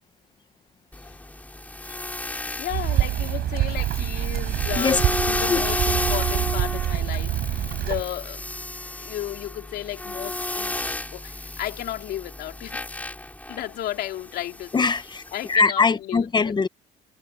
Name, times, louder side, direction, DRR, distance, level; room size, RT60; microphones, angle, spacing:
sound 1, 0.9-15.6, left 1 dB, 10° left, 7.0 m, -32 dB
voice 1, 2.4-8.4 8.8-10.8 11.1-12.8 13.5-14.9 15.3-16.5, left 13 dB, 70° left, 3.7 m, -34 dB
sound 2, 2.7-8.0, right 13 dB, 70° right, 5.6 m, -25 dB
voice 2, 14.7-15.2 15.5-16.7, left 4 dB, 25° left, 1.0 m, -21 dB
cardioid pair, 110°, 17 cm